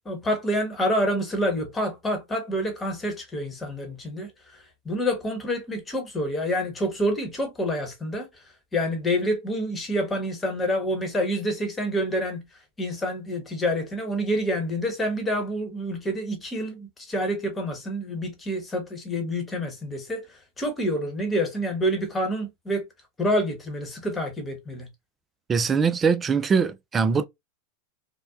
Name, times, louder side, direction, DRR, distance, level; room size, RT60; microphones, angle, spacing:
voice 1, 0.1-8.4 8.7-12.4 12.8-22.8 23.2-24.9, equal, 20° left, 1.0 m, -27 dB
voice 2, 25.5-27.2, right 5 dB, 25° right, 0.3 m, -22 dB
2.6 x 2.1 x 2.3 m
hypercardioid pair, 100°, 0 cm